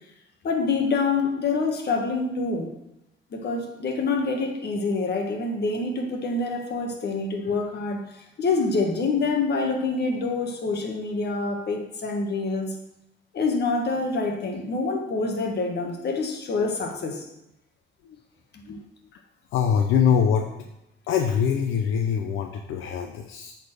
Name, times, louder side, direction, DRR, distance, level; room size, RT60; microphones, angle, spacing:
voice 1, 0.4-2.7 3.3-12.7 13.3-17.2 18.5-18.8, left 3 dB, 55° left, 3 dB, 1.6 m, -26 dB
voice 2, 19.5-20.6 21.1-23.5, left 7 dB, 85° left, 4 dB, 0.6 m, -23 dB
8.2 x 4.4 x 6.1 m, 0.85 s
cardioid pair, 90°, 20 cm